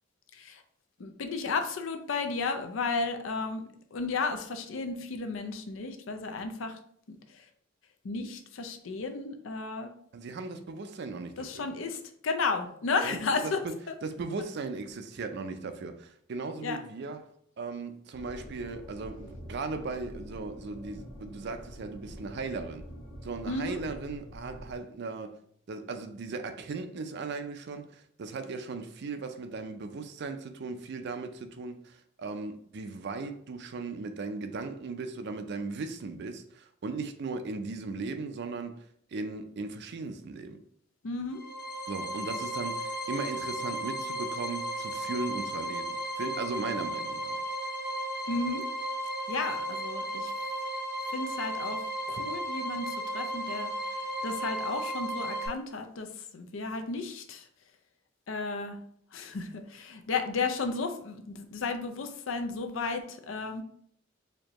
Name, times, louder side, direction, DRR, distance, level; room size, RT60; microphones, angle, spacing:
voice 1, 1.0-3.6 3.9-6.8 7.1-7.5 8.0-9.9 11.4-13.6 13.9-14.0 16.6-16.8 23.5-23.8 41.0-41.4 48.3-48.6 49.3-50.3 51.1-51.8 52.1-57.5 58.3-58.8 59.1-63.6, left 4 dB, 80° left, 0.5 m, -33 dB
voice 2, 10.1-11.5 13.0-13.2 13.4-13.7 14.0-17.2 17.6-22.9 23.2-25.4 25.7-38.8 39.1-40.6 41.9-47.4, right 3 dB, 60° right, 0.4 m, -37 dB
sound 1, 18.1-24.7, equal, 20° left, 0.8 m, -46 dB
sound 2, 41.3-55.5, right 1 dB, 50° left, 1.2 m, -35 dB
4.3 x 2.7 x 2.9 m
head